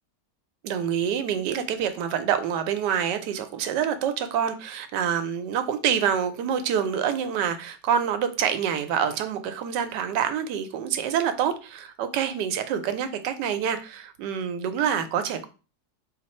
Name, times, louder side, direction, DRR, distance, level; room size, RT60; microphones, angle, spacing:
voice 1, 0.6-15.5, right 8 dB, 80° right, 9 dB, 1.2 m, -26 dB
4.2 x 2.5 x 4.1 m, 0.34 s
omnidirectional pair, 1.9 m